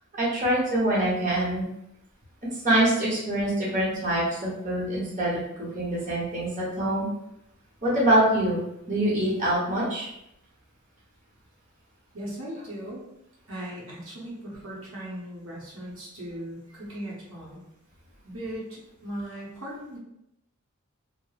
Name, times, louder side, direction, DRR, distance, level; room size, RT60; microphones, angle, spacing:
voice 1, 0.1-1.7 2.6-7.1 7.8-8.6 8.9-10.1, right 1 dB, 35° right, -7 dB, 0.9 m, -25 dB
voice 2, 12.1-13.0 13.5-17.6 18.2-20.0, right 1 dB, 75° right, -6 dB, 0.8 m, -38 dB
3.0 x 2.0 x 2.3 m, 0.82 s
head